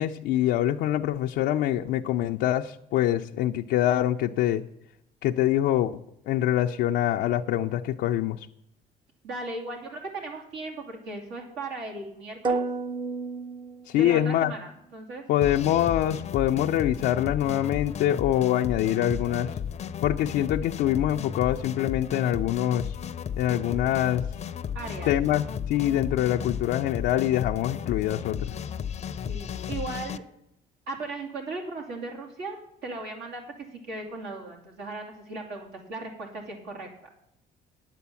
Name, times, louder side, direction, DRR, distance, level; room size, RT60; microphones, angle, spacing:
voice 1, 0.0-4.6 5.2-5.9 6.3-8.4 13.9-14.5 15.3-19.5 20.0-22.9 23.4-24.2 25.1-28.5, left 12 dB, 85° left, 2 dB, 0.5 m, -24 dB
voice 2, 9.2-12.7 13.9-15.2 24.7-25.1 29.3-30.2 30.9-36.9, right 3 dB, 80° right, 1 dB, 2.6 m, -37 dB
sound 1, 12.4-14.4, right 4 dB, 30° right, 0.7 m, -31 dB
sound 2, 15.4-30.2, left 8 dB, 40° left, 0.6 m, -34 dB
9.3 x 8.4 x 7.0 m, 0.77 s
cardioid pair, 110°, 17 cm